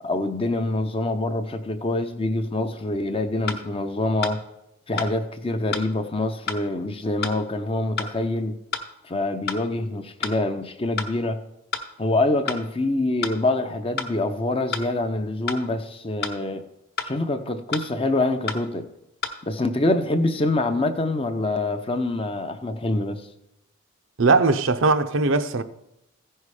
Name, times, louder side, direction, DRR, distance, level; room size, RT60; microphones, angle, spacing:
voice 1, 0.0-4.4 4.9-8.6 9.0-11.4 12.0-16.6 17.0-18.9 19.4-23.3, left 2 dB, 25° left, 0.6 m, -25 dB
sound 1, 2.8-2.9 3.5-3.6 4.2-4.4 5.0-5.1 5.7-5.9 6.5-6.6 7.2-7.4 8.0-8.1 8.7-8.9 9.5-9.6 10.2-10.4 11.0-11.1 11.7-11.9 12.5-12.6 13.2-13.4 14.0-14.1 14.7-14.9 15.5-15.6 16.2-16.4 17.0-17.1 17.7-17.9 18.5-18.6 19.2-19.4, left 5 dB, 45° left, 1.0 m, -29 dB
voice 2, 24.2-25.6, right 3 dB, 65° right, 0.6 m, -19 dB
15.0 x 5.5 x 4.9 m
head